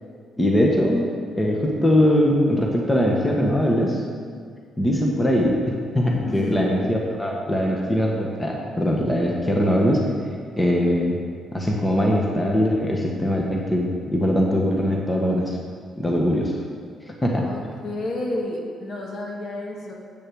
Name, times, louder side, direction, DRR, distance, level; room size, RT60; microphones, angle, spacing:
voice 1, 0.4-1.1 1.4-4.0 4.8-5.6 5.9-10.0 10.6-11.2 11.5-15.6 16.0-16.6 17.2-17.5, equal, 15° left, -1 dB, 1.3 m, -21 dB
voice 2, 6.3-6.7 17.4-19.9, left 1 dB, 55° left, -1 dB, 1.9 m, -31 dB
8.6 x 6.3 x 6.3 m, 2.1 s
cardioid pair, 90°, 0 cm